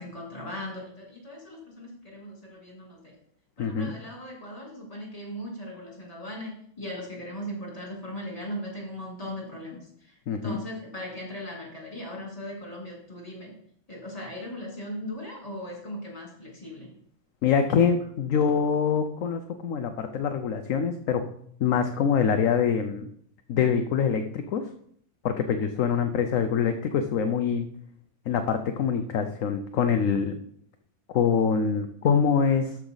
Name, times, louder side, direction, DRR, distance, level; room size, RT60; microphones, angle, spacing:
voice 1, 0.0-3.1 3.6-13.5 13.9-16.9, left 1 dB, 25° left, -2 dB, 3.2 m, -38 dB
voice 2, 3.6-3.9 10.3-10.6 17.4-21.3 21.6-23.0 23.5-24.7 25.2-27.7 28.3-30.3 31.1-32.8, left 6 dB, 65° left, 7 dB, 1.0 m, -24 dB
13.0 x 6.0 x 4.0 m, 0.66 s
omnidirectional pair, 1.6 m